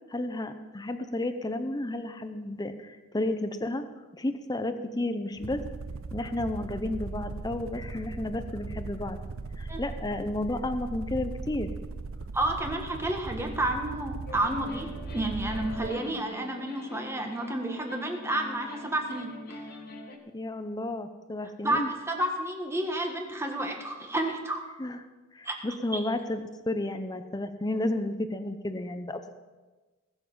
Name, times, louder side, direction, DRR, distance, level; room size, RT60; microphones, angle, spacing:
voice 1, 0.1-3.8 4.2-5.6 6.1-9.2 9.6-11.7 20.3-21.9 24.8-25.0 25.3-26.4 26.7-29.3, left 1 dB, 20° left, 9 dB, 0.6 m, -32 dB
sound 1, 5.3-16.0, right 3 dB, 85° right, 0.6 m, -38 dB
voice 2, 12.3-14.9 15.1-19.6 21.6-24.6 25.4-25.6, right 1 dB, 15° right, 3 dB, 1.5 m, -30 dB
sound 2, 14.3-20.2, left 2 dB, 50° left, 1.5 m, -44 dB
20.0 x 7.2 x 5.5 m, 1.3 s
head